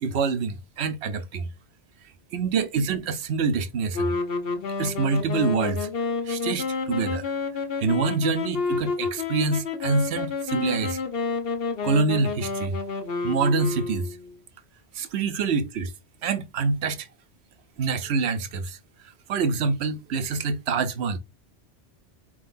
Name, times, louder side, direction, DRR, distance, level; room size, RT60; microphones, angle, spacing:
voice 1, 0.0-1.5 2.3-4.1 4.8-5.9 6.3-7.2 7.8-10.9 11.8-12.7 13.2-14.0 15.0-15.9 16.2-17.1 17.8-18.8 19.3-21.2, right 4 dB, 70° right, 0.9 m, -26 dB
sound 1, 3.9-14.3, left 4 dB, 60° left, 1.0 m, -29 dB
4.4 x 3.8 x 2.5 m
omnidirectional pair, 1.2 m